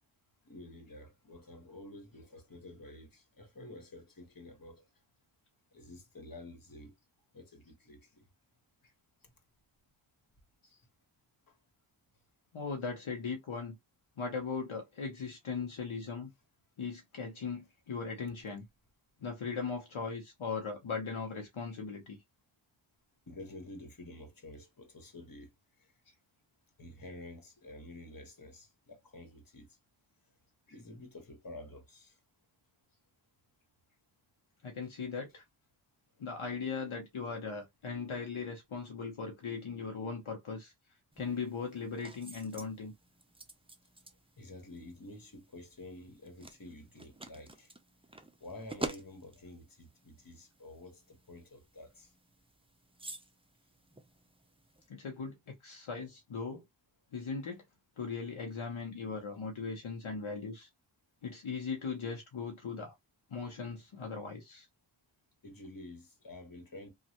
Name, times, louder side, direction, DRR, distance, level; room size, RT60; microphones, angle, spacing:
voice 1, 0.4-4.9 5.7-6.9 7.3-8.3 9.2-9.3 11.5-11.6 23.3-26.0 26.8-29.8 30.7-32.2 44.4-47.7 48.4-52.1 65.4-66.9, left 1 dB, 45° left, 1.3 m, -50 dB
voice 2, 12.5-13.8 14.2-16.3 16.8-18.7 19.2-22.2 34.6-35.4 36.2-40.7 41.2-42.9 54.9-56.6 57.1-57.6 58.0-60.7 61.2-62.9 63.3-64.7, left 5 dB, 75° left, 0.8 m, -39 dB
sound 1, 41.1-54.9, right 2 dB, 10° right, 0.5 m, -49 dB
3.1 x 2.4 x 2.9 m
wide cardioid pair, 55°, 49 cm